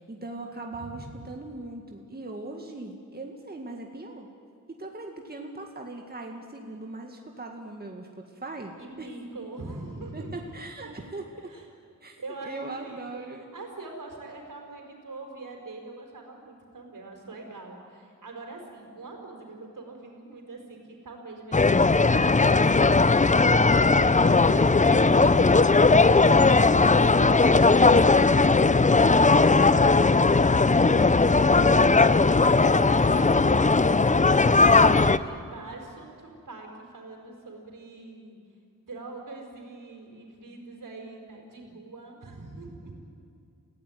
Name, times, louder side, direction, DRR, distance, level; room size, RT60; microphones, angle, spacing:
voice 1, 0.0-4.3 4.7-9.1 10.1-11.5 12.0-12.2 12.4-13.5 24.0-24.1 27.2-28.1 29.1-29.7 31.3-31.5 31.7-31.9, right 2 dB, 30° right, 2 dB, 2.1 m, -40 dB
voice 2, 0.7-1.3 8.8-10.6 10.8-10.9 11.3-11.7 12.2-13.2 13.5-32.2 32.6-38.4 38.8-43.0, right 3 dB, 75° right, 2 dB, 5.0 m, -43 dB
sound 1, 21.5-35.2, left 3 dB, 25° left, 0.7 m, -18 dB
28.5 x 17.0 x 9.5 m, 2.5 s
wide cardioid pair, 105°, 32 cm